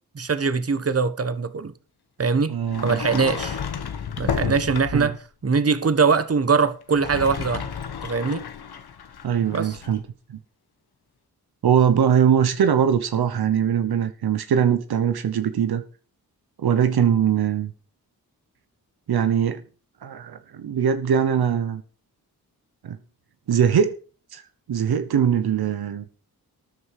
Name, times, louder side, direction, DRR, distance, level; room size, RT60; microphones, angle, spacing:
voice 1, 0.1-1.7 2.2-2.5 2.8-3.6 4.2-7.7 8.0-8.4 9.5-9.8, right 5 dB, 40° right, 1.3 m, -22 dB
voice 2, 2.5-3.0 4.9-5.1 9.2-10.0 11.6-15.8 16.6-17.7 19.1-19.6 20.0-21.8 22.8-23.0 23.5-24.0 24.3-24.4 24.7-26.0, right 8 dB, 80° right, 1.1 m, -21 dB
Sliding door, 2.7-5.2 6.8-10.0, left 7 dB, 80° left, 1.4 m, -31 dB
13.5 x 9.7 x 4.9 m
cardioid pair, 55°, 37 cm